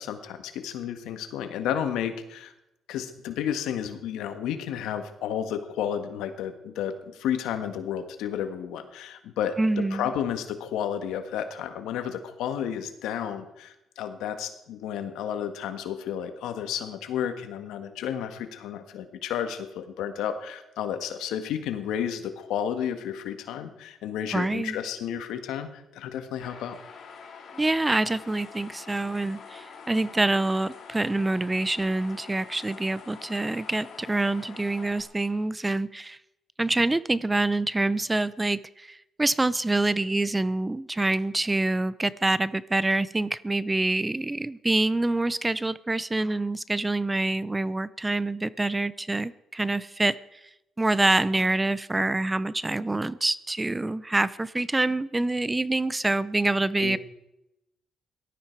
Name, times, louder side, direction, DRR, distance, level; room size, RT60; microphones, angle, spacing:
voice 1, 0.0-2.5 2.9-26.8 56.8-57.0, left 9 dB, 90° left, 8 dB, 1.6 m, -32 dB
voice 2, 9.6-10.1 24.3-24.8 27.6-36.2 36.6-50.4 50.8-57.0, right 2 dB, 15° right, 18 dB, 0.6 m, -26 dB
sound 1, 26.4-35.0, left 6 dB, 60° left, 3.6 m, -46 dB
18.0 x 13.0 x 4.7 m, 0.88 s
cardioid pair, 90°, 0 cm